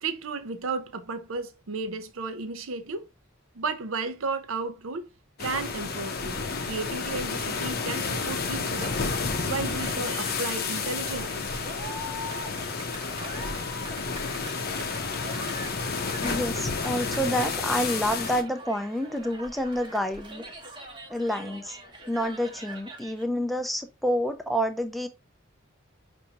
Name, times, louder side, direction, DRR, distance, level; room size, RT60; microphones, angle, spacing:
voice 1, 0.0-3.1 3.5-5.1 5.4-9.0 9.4-11.4, right 4 dB, 75° right, 0.6 m, -33 dB
sound 1, 5.4-18.4, left 4 dB, 45° left, 0.6 m, -31 dB
Cheering, 9.6-23.2, right 1 dB, 25° right, 0.9 m, -43 dB
voice 2, 16.2-20.4 21.1-21.8 22.1-25.1, equal, ahead, 0.4 m, -28 dB
5.7 x 2.6 x 2.8 m
head